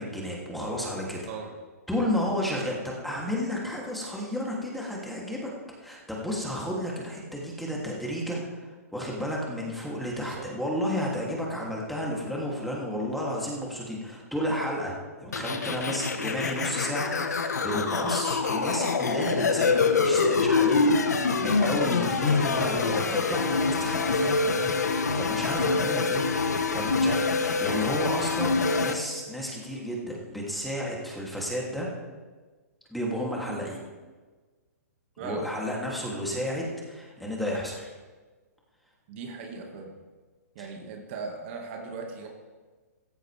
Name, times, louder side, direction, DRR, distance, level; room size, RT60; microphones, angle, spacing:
voice 1, 0.0-1.2 1.9-5.5 5.8-31.9 32.9-33.8 35.2-37.9 40.6-40.7, equal, ahead, -3 dB, 2.9 m, -32 dB
voice 2, 10.2-10.5 35.2-35.5 39.1-39.9 40.6-42.3, right 4 dB, 45° right, 2 dB, 2.0 m, -38 dB
sound 1, 15.3-28.9, left 4 dB, 85° left, 1.3 m, -25 dB
15.0 x 14.5 x 3.5 m, 1.4 s
hypercardioid pair, 125°, 9 cm